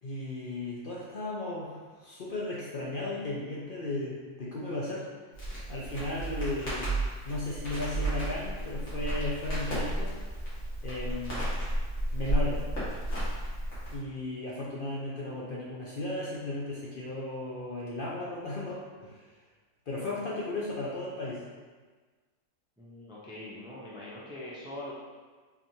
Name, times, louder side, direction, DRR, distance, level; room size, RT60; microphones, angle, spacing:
voice 1, 0.0-5.1 5.7-7.0 7.2-10.1 10.8-11.6 12.1-12.6 13.9-19.2 19.9-21.4, left 2 dB, 55° left, -6 dB, 0.7 m, -35 dB
Crackle, 5.3-14.0, right 1 dB, 75° left, 1.8 m, -33 dB
voice 2, 22.8-24.9, left 1 dB, 5° right, -7 dB, 0.4 m, -42 dB
4.0 x 3.0 x 2.7 m, 1.4 s
omnidirectional pair, 1.4 m